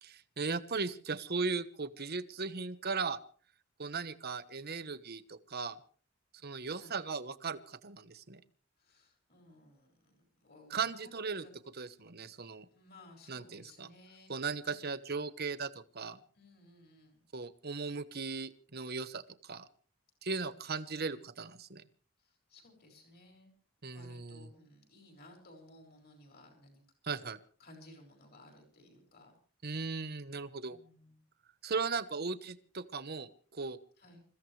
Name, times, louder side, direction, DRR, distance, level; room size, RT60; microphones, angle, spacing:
voice 1, 0.0-3.2 3.8-5.8 6.4-8.4 10.7-11.4 11.8-12.7 13.3-13.9 14.3-15.7 15.9-16.2 17.3-19.7 20.2-21.8 23.8-24.5 27.0-27.4 29.6-30.8 31.6-33.8, right 4 dB, 50° right, 12 dB, 1.2 m, -37 dB
voice 2, 6.7-7.0 8.8-11.1 11.4-11.5 12.6-14.3 14.6-14.8 16.3-17.2 20.3-21.3 22.2-23.5 23.9-27.3 27.6-29.3 30.7-31.2 34.0-34.2, left 1 dB, 50° left, 3 dB, 5.8 m, -58 dB
28.0 x 15.0 x 3.3 m, 0.42 s
head